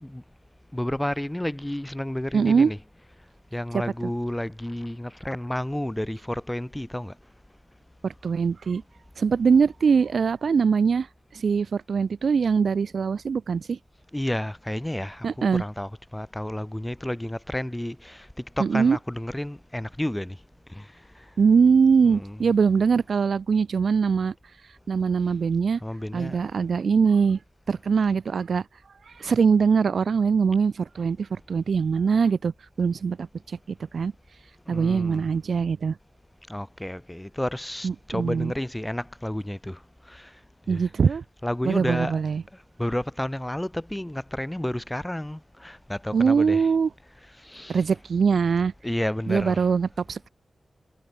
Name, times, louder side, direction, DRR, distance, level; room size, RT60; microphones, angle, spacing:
voice 1, 0.7-2.8 3.5-7.2 14.1-20.4 20.7-21.2 22.0-22.4 25.8-26.4 34.7-35.3 36.5-39.8 40.1-40.3 40.7-40.9 41.4-42.2 42.8-46.7 47.4-47.8 48.8-49.6, left 1 dB, 10° left, 0.9 m, -31 dB
voice 2, 2.3-2.7 3.7-3.8 8.0-8.8 9.2-11.1 11.3-13.8 15.2-15.6 18.6-19.0 21.4-24.3 24.9-25.8 26.1-27.4 27.7-28.6 29.1-32.5 32.8-33.3 33.9-34.1 34.7-36.0 37.8-38.5 40.7-41.2 41.6-42.4 46.1-46.9 47.7-48.7 49.3-50.3, right 5 dB, 70° right, 0.3 m, -22 dB
wide cardioid pair, 160°, 0 cm